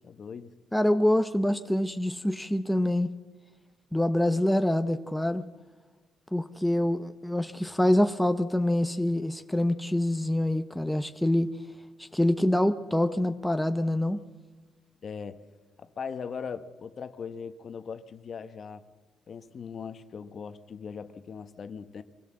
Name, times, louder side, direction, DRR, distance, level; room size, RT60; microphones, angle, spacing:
voice 1, 0.0-0.5 15.0-15.4 15.8-18.9 19.3-22.0, left 6 dB, 45° left, 1.1 m, -39 dB
voice 2, 0.7-3.1 3.9-5.5 6.3-11.5 12.0-14.2, left 1 dB, 5° left, 0.7 m, -25 dB
24.5 x 16.5 x 7.5 m
cardioid pair, 115°, 0 cm